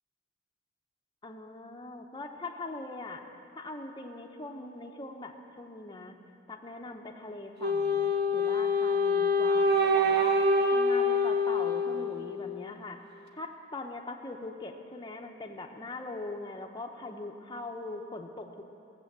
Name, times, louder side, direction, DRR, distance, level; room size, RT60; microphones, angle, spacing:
voice 1, 1.2-3.2 3.6-6.1 6.5-10.4 10.7-13.0 13.4-18.6, left 2 dB, 25° left, 3 dB, 0.9 m, -41 dB
Wind instrument woodwind instrument, 7.6-12.7, left 2 dB, 60° right, 1.0 m, -26 dB
16.5 x 7.7 x 7.5 m, 2.6 s
head